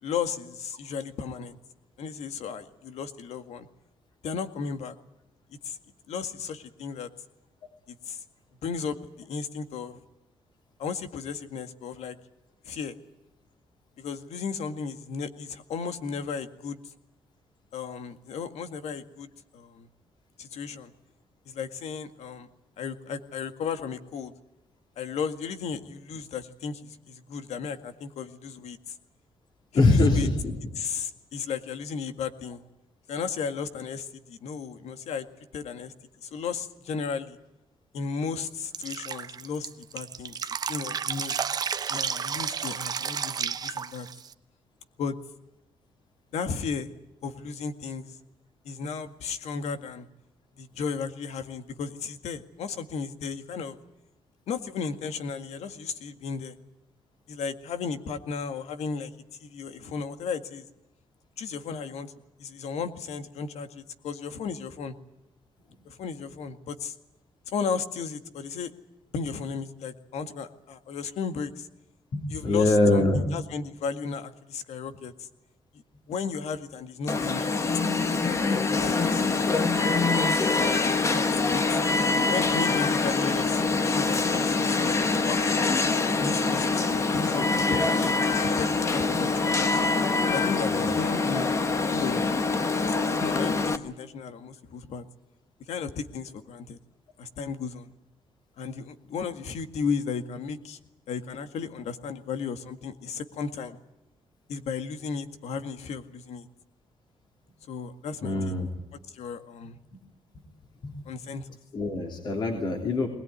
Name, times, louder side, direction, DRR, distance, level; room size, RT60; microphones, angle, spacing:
voice 1, 0.0-1.6 2.0-3.7 4.2-5.0 5.6-5.8 6.1-7.1 7.9-8.2 8.6-10.0 10.8-12.2 12.7-13.0 14.0-16.8 17.7-19.9 20.4-20.9 21.5-22.5 22.8-24.3 25.0-29.0 29.7-30.3 30.7-32.6 33.1-35.3 35.5-35.9 36.2-37.4 37.9-40.4 40.7-41.3 41.9-44.1 45.0-45.2 46.3-46.9 47.2-48.2 48.7-50.1 50.6-53.8 54.5-56.6 57.3-59.1 59.4-60.7 61.4-62.1 62.4-64.9 65.9-67.0 67.5-68.7 69.1-71.7 72.3-75.3 76.1-77.6 77.9-80.5 81.0-81.8 82.3-85.0 85.2-85.5 86.1-89.8 90.3-92.3 92.9-95.0 95.7-96.8 97.2-97.9 98.6-100.8 101.1-103.8 104.5-106.5 107.7-108.5 108.9-109.8 111.1-111.5, left 5 dB, 80° left, 8 dB, 1.9 m, -35 dB
voice 2, 29.7-30.6 72.1-73.3 90.6-91.0 92.7-92.8 108.2-108.7 110.8-111.0 111.7-113.1, left 2 dB, 45° left, 2 dB, 3.2 m, -23 dB
Drip, 38.7-44.3, right 7 dB, 35° right, 0.8 m, -32 dB
Alarm, 77.1-93.8, left 3 dB, 25° left, 1.2 m, -25 dB
20.5 x 20.5 x 9.6 m, 0.88 s
wide cardioid pair, 170°, 11 cm